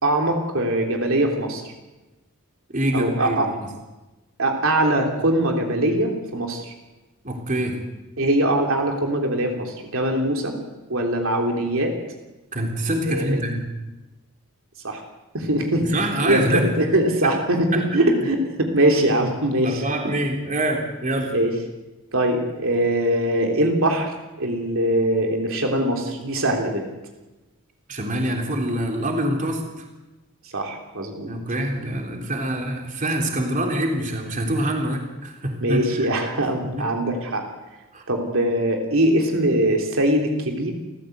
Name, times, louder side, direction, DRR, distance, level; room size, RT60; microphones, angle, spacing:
voice 1, 0.0-1.6 2.9-3.5 4.4-6.7 8.2-10.5 10.9-11.9 13.1-13.4 14.8-15.0 15.3-15.9 16.2-19.8 21.3-21.5 22.1-26.9 30.4-31.3 35.6-37.4 38.1-40.7, right 1 dB, 65° right, 2 dB, 3.3 m, -22 dB
voice 2, 2.7-3.5 7.2-7.8 12.5-13.7 15.8-16.7 17.2-17.3 17.7-17.8 19.6-21.3 27.9-29.6 31.3-36.1 36.6-36.8 37.9-38.0, right 1 dB, 35° right, 2 dB, 3.5 m, -25 dB
29.5 x 14.5 x 8.1 m, 1.1 s
head